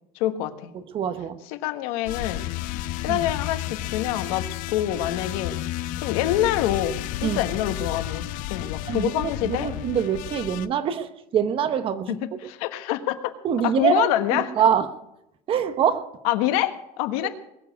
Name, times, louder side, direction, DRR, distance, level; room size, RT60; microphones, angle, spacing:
voice 1, 0.1-0.7 1.6-2.4 3.0-5.6 6.0-9.7 12.1-13.3 13.6-14.5 16.2-17.3, left 12 dB, 85° left, 9 dB, 1.5 m, -26 dB
voice 2, 0.9-1.4 3.1-3.2 7.2-7.4 8.9-12.2 13.4-14.9 15.5-16.1, right 8 dB, 30° right, 10 dB, 1.0 m, -24 dB
sound 1, 2.1-10.7, left 15 dB, 50° left, 0.6 m, -32 dB
21.0 x 7.3 x 8.1 m, 0.84 s
cardioid pair, 175°, 18 cm